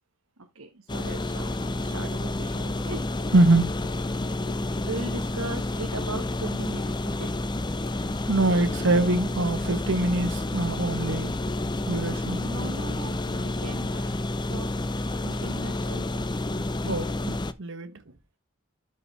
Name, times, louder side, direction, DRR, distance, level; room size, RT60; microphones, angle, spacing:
voice 1, 0.5-1.5 1.8-3.0 4.8-7.3 12.4-13.9 14.5-14.7 15.2-16.2 17.9-18.0, right 3 dB, 75° right, 1.4 m, -38 dB
sound 1, 0.9-17.5, left 2 dB, 20° left, 0.6 m, -30 dB
voice 2, 1.6-1.9 2.9-3.0 3.3-3.9 8.3-11.3 11.9-12.4 13.9-14.1 16.8-17.9, right 2 dB, 55° right, 1.2 m, -24 dB
12.5 x 5.3 x 3.3 m
head